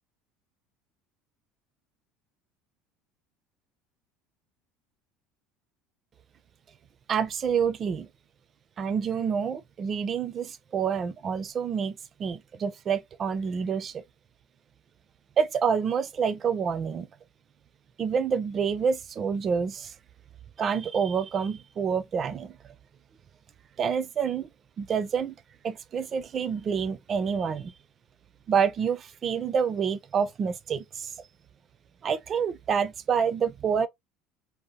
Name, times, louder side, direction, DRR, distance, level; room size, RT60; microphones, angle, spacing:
voice 1, 7.1-8.1 8.8-14.0 15.4-17.1 18.0-19.9 20.6-22.6 23.8-24.5 24.8-25.3 25.6-27.7 28.5-31.1 32.0-33.9, right 6 dB, 35° right, 0.4 m, -28 dB
2.7 x 2.0 x 2.7 m
cardioid pair, 130°, 0 cm